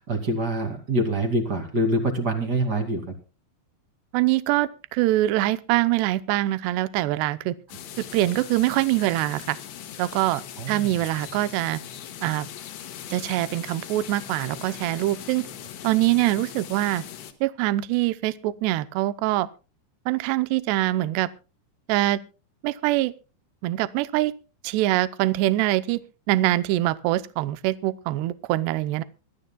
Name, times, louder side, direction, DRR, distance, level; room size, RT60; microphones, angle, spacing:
voice 1, 0.0-3.0 10.6-10.9, right 1 dB, 30° right, 4 dB, 1.9 m, -25 dB
voice 2, 4.1-7.6 8.0-9.6 10.0-11.8 12.2-12.5 13.1-15.5 15.8-17.0 17.4-19.5 20.1-21.3 21.9-22.2 22.6-23.1 23.6-24.3 24.6-26.0 26.3-29.0, right 16 dB, 80° right, 14 dB, 2.7 m, -24 dB
sound 1, 7.7-17.3, left 9 dB, 70° left, 3.4 m, -40 dB
24.0 x 13.5 x 2.3 m, 0.33 s
omnidirectional pair, 5.3 m